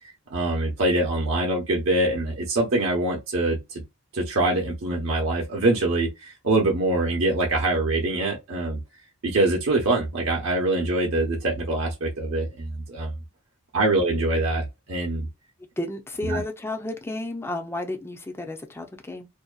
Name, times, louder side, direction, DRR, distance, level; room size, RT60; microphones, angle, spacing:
voice 1, 0.3-3.8 4.1-8.8 9.2-13.1 13.7-15.3 16.2-16.4, right 2 dB, 70° right, 0.7 m, -24 dB
voice 2, 15.8-19.3, left 1 dB, 10° left, 0.4 m, -32 dB
2.6 x 2.1 x 2.2 m
head